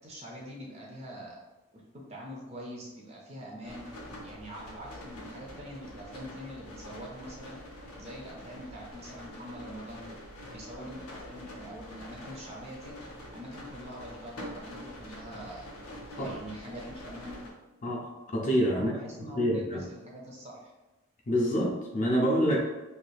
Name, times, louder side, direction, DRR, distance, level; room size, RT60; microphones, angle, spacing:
voice 1, 0.0-1.4 1.9-3.9 4.2-7.6 8.0-10.1 10.5-13.0 13.3-15.7 16.1-17.4 18.7-20.7, equal, 30° right, -2 dB, 0.5 m, -44 dB
sound 1, 3.6-17.5, left 1 dB, 85° left, 0.7 m, -46 dB
voice 2, 17.8-18.9 19.3-19.9 21.3-22.6, equal, 35° left, -2 dB, 0.4 m, -27 dB
3.2 x 2.7 x 2.3 m, 1.1 s
head